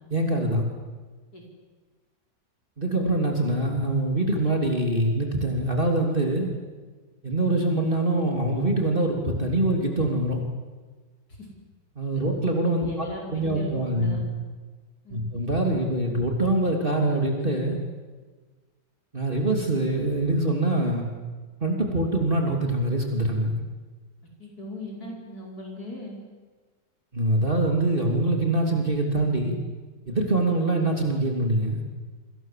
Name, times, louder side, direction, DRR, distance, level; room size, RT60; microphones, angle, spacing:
voice 1, 0.1-0.6 2.8-6.5 7.2-10.4 12.0-14.2 15.1-17.8 19.1-21.1 21.6-23.6 27.1-29.6 30.1-31.8, right 1 dB, 30° right, 1 dB, 3.4 m, -24 dB
voice 2, 12.8-14.2 15.0-15.2 24.4-26.2, left 1 dB, 60° left, -1 dB, 5.5 m, -38 dB
29.0 x 25.0 x 7.6 m, 1.4 s
omnidirectional pair, 1.8 m